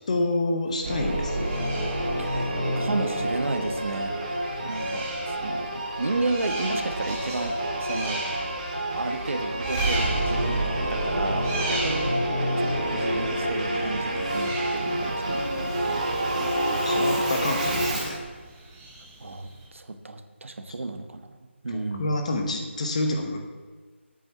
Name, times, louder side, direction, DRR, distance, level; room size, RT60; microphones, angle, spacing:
voice 1, 0.1-1.5 4.8-4.9 16.3-18.2 21.7-23.4, left 2 dB, 30° left, 4 dB, 0.9 m, -28 dB
sound 1, 0.7-19.7, right 2 dB, 10° right, 1.1 m, -39 dB
Singing / Musical instrument, 0.8-18.2, right 1 dB, 35° right, 1.8 m, -28 dB
voice 2, 2.2-4.2 4.6-8.2 8.9-12.2 12.6-16.0 19.2-22.1, right 2 dB, 80° right, 8 dB, 1.2 m, -33 dB
8.4 x 7.6 x 6.9 m, 1.4 s
figure-of-eight pair, 175°, 7 cm